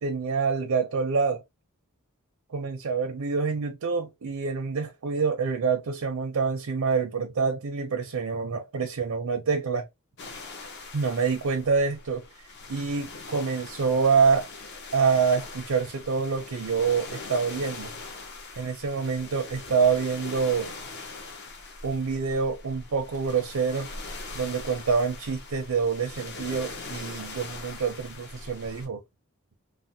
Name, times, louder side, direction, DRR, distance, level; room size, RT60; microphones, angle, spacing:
voice 1, 0.0-1.4 2.5-9.9 10.9-12.3 12.7-14.5 14.9-17.9 18.6-20.7 21.8-23.9 24.3-29.0, right 5 dB, 90° right, 0.6 m, -26 dB
sound 1, 10.2-28.9, left 3 dB, 50° left, 0.7 m, -41 dB
3.1 x 2.1 x 2.7 m
head